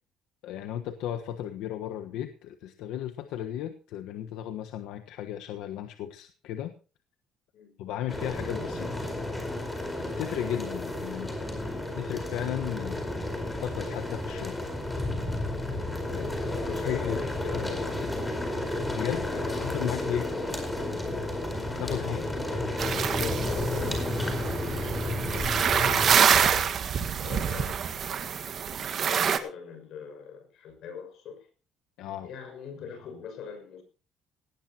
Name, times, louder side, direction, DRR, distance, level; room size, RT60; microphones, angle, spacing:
voice 1, 0.4-6.7 7.8-9.0 10.0-11.5 12.0-13.1 13.6-14.6 16.1-16.3 16.7-17.2 17.5-17.8 19.0-19.3 19.6-20.2 21.8-22.2 32.0-32.3, left 11 dB, 90° left, 7 dB, 1.2 m, -35 dB
sound 1, 8.1-26.2, left 1 dB, 10° left, 4.5 m, -32 dB
voice 2, 16.1-18.0 18.7-20.7 21.8-27.8 28.1-28.2 29.0-31.5 32.2-33.8, left 7 dB, 65° left, 6 dB, 6.1 m, -43 dB
sound 2, 22.8-29.4, right 7 dB, 45° right, 1.6 m, -26 dB
18.5 x 17.0 x 2.9 m, 0.35 s
cardioid pair, 145°, 0 cm